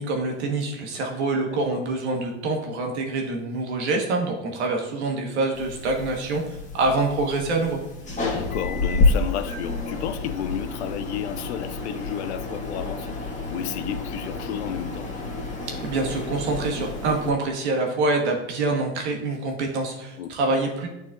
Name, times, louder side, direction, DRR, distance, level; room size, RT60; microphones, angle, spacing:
voice 1, 0.0-7.8 15.7-20.9, right 3 dB, 85° right, 1.4 m, -26 dB
sound 1, 5.5-17.3, left 3 dB, 20° left, 1.5 m, -29 dB
voice 2, 8.2-15.1 20.2-20.4, left 10 dB, 90° left, 0.5 m, -32 dB
9.4 x 4.1 x 2.5 m
supercardioid pair, 95°, 33 cm